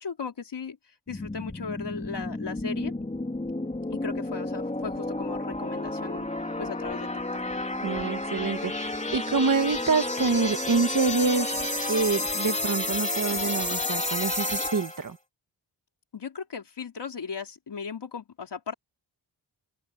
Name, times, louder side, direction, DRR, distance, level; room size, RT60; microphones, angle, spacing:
voice 1, 0.0-2.9 3.9-6.3 6.6-7.1 16.1-18.7, left 5 dB, 60° left, 4.3 m, -37 dB
sound 1, 1.1-15.1, left 2 dB, 15° left, 3.9 m, -31 dB
voice 2, 7.8-11.5 11.9-15.2, right 4 dB, 40° right, 1.8 m, -26 dB
wide cardioid pair, 155°, 46 cm